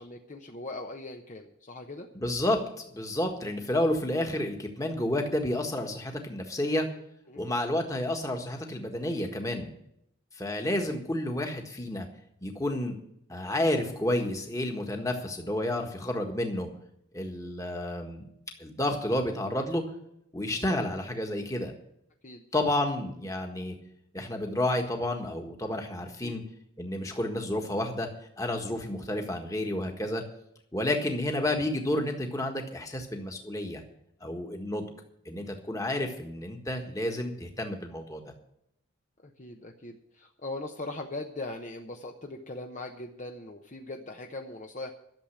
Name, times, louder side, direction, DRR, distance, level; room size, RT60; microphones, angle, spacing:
voice 1, 0.0-2.1 7.3-7.5 20.5-20.8 22.2-22.4 26.2-26.3 39.2-44.9, left 2 dB, 40° left, 3 dB, 0.9 m, -40 dB
voice 2, 2.1-2.6 2.9-6.9 7.4-9.7 10.3-12.1 12.4-13.0 13.3-16.7 17.1-18.2 18.6-19.8 20.3-21.7 22.5-23.8 24.1-26.4 26.8-28.1 28.4-30.2 30.7-33.8 34.2-34.9 35.2-38.3, left 1 dB, 15° left, 3 dB, 1.5 m, -30 dB
12.0 x 7.3 x 9.9 m, 0.76 s
head